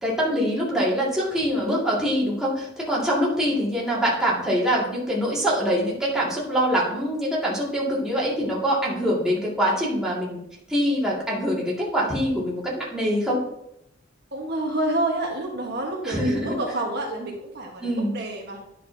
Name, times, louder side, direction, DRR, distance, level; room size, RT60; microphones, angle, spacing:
voice 1, 0.0-10.4 10.7-13.4 16.0-16.6 17.8-18.2, equal, 5° right, -6 dB, 2.1 m, -24 dB
voice 2, 14.3-18.6, right 1 dB, 55° right, 0 dB, 1.4 m, -28 dB
10.0 x 6.3 x 2.8 m, 0.80 s
head